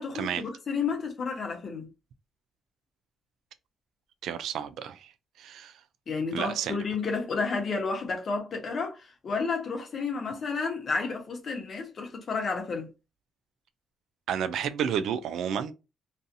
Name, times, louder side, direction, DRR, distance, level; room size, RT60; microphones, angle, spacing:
voice 1, 0.0-1.9 6.1-12.9, left 4 dB, 50° left, 0.9 m, -31 dB
voice 2, 4.2-5.1 5.4-5.7 6.3-6.8 14.3-15.7, right 8 dB, 75° right, 0.3 m, -31 dB
2.6 x 2.4 x 2.5 m
cardioid pair, 90°, 0 cm